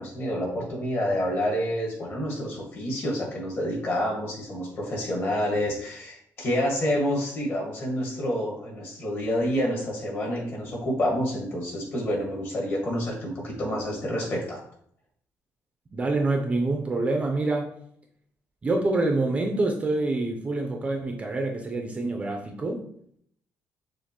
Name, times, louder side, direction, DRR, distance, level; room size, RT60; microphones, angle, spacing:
voice 1, 0.0-14.6, equal, 40° left, -1 dB, 1.5 m, -28 dB
voice 2, 15.9-17.7 18.6-22.8, right 2 dB, 25° right, 2 dB, 0.5 m, -26 dB
6.4 x 2.5 x 2.9 m, 0.66 s
cardioid pair, 160°, 6 cm